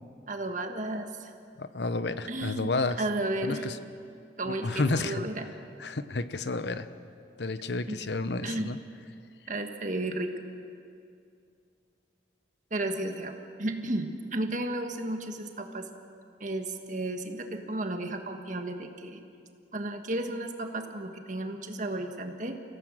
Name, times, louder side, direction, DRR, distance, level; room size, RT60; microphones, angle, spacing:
voice 1, 0.3-1.3 2.3-3.7 4.4-5.5 7.9-8.0 8.4-8.8 9.5-10.3 12.7-15.9 16.4-19.2 19.7-22.6, right 1 dB, 45° right, 5 dB, 1.6 m, -33 dB
voice 2, 1.6-3.0 3.4-3.8 4.5-5.2 5.8-6.9 7.4-8.8, left 3 dB, 70° left, 12 dB, 0.9 m, -31 dB
26.5 x 16.5 x 7.5 m, 2.4 s
head